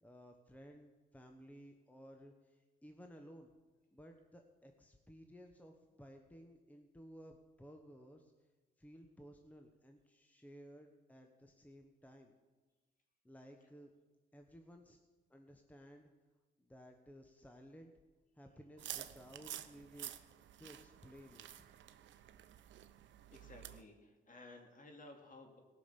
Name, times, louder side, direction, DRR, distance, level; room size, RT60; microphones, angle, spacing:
voice 1, 0.0-3.5 3.9-8.3 8.8-12.3 13.2-13.9 14.3-15.0 15.3-16.1 16.6-17.9 18.4-20.1 20.6-21.7, equal, 5° left, 4 dB, 1.1 m, -57 dB
sound 1, 18.8-23.8, right 11 dB, 70° right, 0.7 m, -50 dB
voice 2, 23.3-25.6, left 2 dB, 40° left, 3 dB, 2.6 m, -56 dB
18.0 x 6.1 x 6.9 m, 1.3 s
cardioid pair, 90°, 20 cm